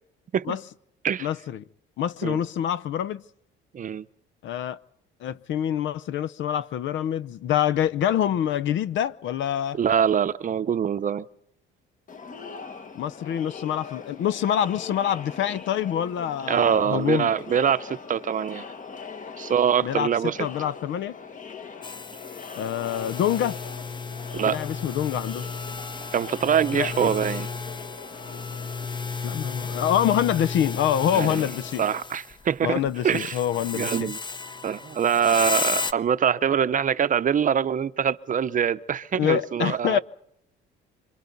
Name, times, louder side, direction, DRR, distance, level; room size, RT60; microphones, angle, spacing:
voice 1, 1.2-1.6 2.0-3.2 4.4-4.8 5.2-9.8 13.0-17.3 19.8-21.2 22.6-23.6 24.5-25.4 26.7-27.1 29.2-31.8 32.6-34.1 39.1-40.0, left 10 dB, 65° left, 0.8 m, -26 dB
voice 2, 3.7-4.0 9.7-11.3 16.5-18.6 19.4-20.5 24.3-24.6 26.1-27.5 31.1-31.4 31.8-33.4 33.7-34.2 34.6-40.0, right 8 dB, 40° right, 0.8 m, -24 dB
Crowd, 12.1-32.0, left 5 dB, 40° left, 1.7 m, -42 dB
sound 1, 21.8-32.5 32.9-35.9, left 4 dB, 20° left, 0.8 m, -34 dB
27.0 x 26.0 x 4.0 m
cardioid pair, 105°, 21 cm